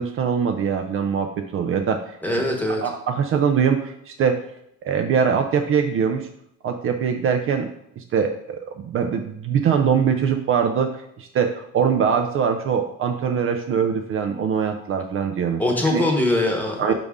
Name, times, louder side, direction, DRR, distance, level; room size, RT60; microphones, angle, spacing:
voice 1, 0.0-2.2 2.8-4.4 4.8-6.3 6.6-7.7 8.0-10.9 11.2-15.6 15.9-16.0 16.8-16.9, right 7 dB, 45° right, 5 dB, 0.5 m, -22 dB
voice 2, 2.2-2.8 15.6-16.9, left 1 dB, 5° left, 1 dB, 1.0 m, -22 dB
5.3 x 5.0 x 3.6 m, 0.77 s
cardioid pair, 135°, 30 cm